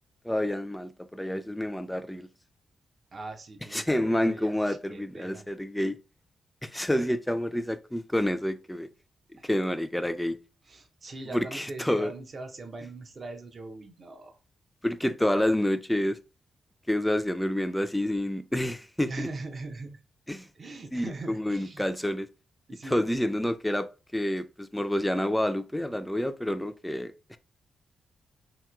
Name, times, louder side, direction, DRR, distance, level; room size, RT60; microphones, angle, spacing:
voice 1, 0.2-2.3 3.7-6.0 6.6-8.9 9.4-10.4 11.3-12.1 14.8-16.2 16.9-19.3 20.3-20.5 20.9-22.3 22.9-27.4, left 1 dB, 5° left, 0.3 m, -28 dB
voice 2, 3.1-5.4 9.4-9.5 10.6-14.4 19.1-20.0 20.5-21.9 22.7-23.0, right 3 dB, 50° right, 0.6 m, -41 dB
2.8 x 2.8 x 2.3 m
supercardioid pair, 55°, 0 cm